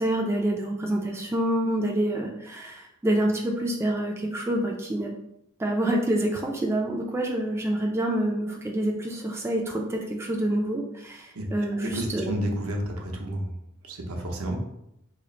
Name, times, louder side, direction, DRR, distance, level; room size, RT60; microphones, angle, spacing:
voice 1, 0.0-5.1 5.6-12.3, right 1 dB, 10° right, 0 dB, 0.3 m, -27 dB
voice 2, 11.8-13.5 13.8-14.6, right 1 dB, 75° right, 1 dB, 0.7 m, -31 dB
3.1 x 2.4 x 3.9 m, 0.82 s
head